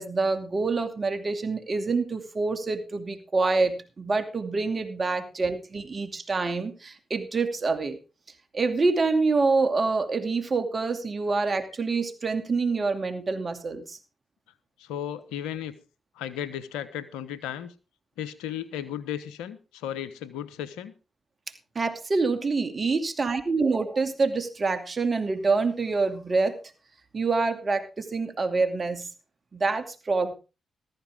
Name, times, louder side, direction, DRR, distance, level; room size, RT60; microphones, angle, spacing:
voice 1, 0.0-8.0 8.5-14.0 21.7-26.6 27.1-29.1 29.5-30.3, right 3 dB, 45° right, 8 dB, 2.5 m, -26 dB
voice 2, 14.8-15.7 16.1-17.7 18.2-20.9, left 10 dB, 90° left, 15 dB, 1.1 m, -35 dB
15.0 x 14.0 x 3.6 m, 0.32 s
hypercardioid pair, 45°, 0 cm